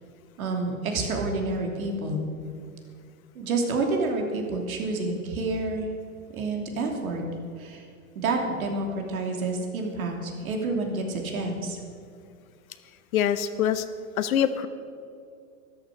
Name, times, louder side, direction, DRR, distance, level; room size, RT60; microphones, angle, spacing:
voice 1, 0.4-2.3 3.3-5.9 6.3-7.2 7.6-7.9 8.1-11.8, right 3 dB, 80° right, 2 dB, 3.0 m, -29 dB
voice 2, 13.1-13.9 14.2-14.7, left 9 dB, 75° left, 11 dB, 1.2 m, -24 dB
13.0 x 12.5 x 6.5 m, 2.3 s
hypercardioid pair, 105°, 42 cm